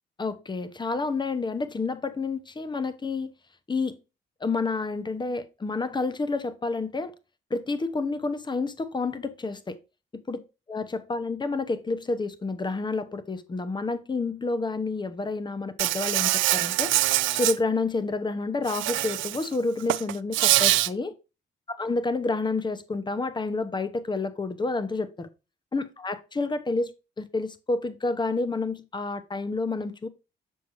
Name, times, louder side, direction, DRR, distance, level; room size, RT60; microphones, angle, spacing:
voice 1, 0.2-3.3 3.7-4.0 4.4-7.1 7.5-9.8 10.3-10.4 10.7-16.9 17.3-21.1 21.8-25.3 25.7-30.1, left 3 dB, 20° left, 0.9 m, -29 dB
Insect, 15.8-17.5 18.7-19.5 19.8-20.9, right 16 dB, 80° right, 0.4 m, -24 dB
7.0 x 6.4 x 3.0 m
cardioid pair, 90°, 20 cm